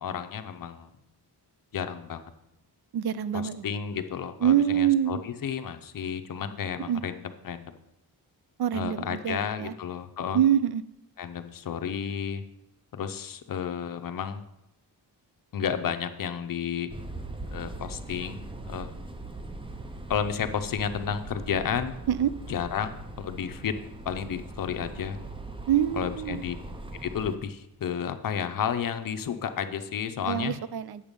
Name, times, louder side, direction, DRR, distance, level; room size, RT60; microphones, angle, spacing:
voice 1, 0.0-0.9 1.7-2.3 3.3-7.7 8.7-10.4 11.2-12.4 12.9-14.4 15.5-16.9 17.5-18.4 18.7-18.9 20.1-21.9 22.5-22.9 23.2-23.8 24.1-25.2 26.0-26.6 27.0-30.5, left 7 dB, 55° left, 9 dB, 0.7 m, -32 dB
voice 2, 2.9-3.7 4.4-5.2 6.9-7.0 8.6-9.7 10.3-10.8 22.1-22.3 25.7-26.4 30.3-31.0, right 10 dB, 65° right, 15 dB, 0.5 m, -25 dB
sound 1, 16.9-27.4, right 2 dB, 15° right, 0.5 m, -40 dB
8.7 x 7.2 x 5.2 m, 0.86 s
wide cardioid pair, 160°, 41 cm